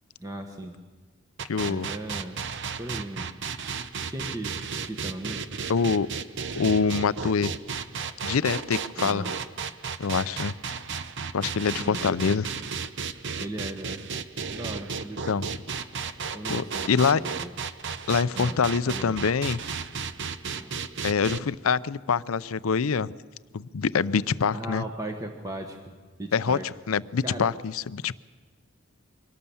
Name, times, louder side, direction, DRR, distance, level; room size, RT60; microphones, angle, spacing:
voice 1, 0.2-0.8 1.6-2.5 2.8-3.3 4.1-5.6 9.0-9.3 11.8-12.2 13.4-14.0 14.5-15.5 16.3-17.5 18.3-18.6 18.9-19.1 20.5-20.8 24.5-25.9 26.2-26.7 27.2-27.5, right 1 dB, 15° right, 3 dB, 1.2 m, -37 dB
sound 1, 1.4-21.4, right 6 dB, 60° right, 0.8 m, -33 dB
voice 2, 1.5-1.9 5.7-6.1 6.5-7.5 8.2-9.2 10.0-10.5 11.3-12.5 15.3-15.4 16.5-17.2 18.1-19.6 21.0-23.1 23.5-24.8 26.3-28.1, left 5 dB, 85° left, 17 dB, 0.5 m, -25 dB
23.5 x 18.0 x 7.1 m, 1.4 s
head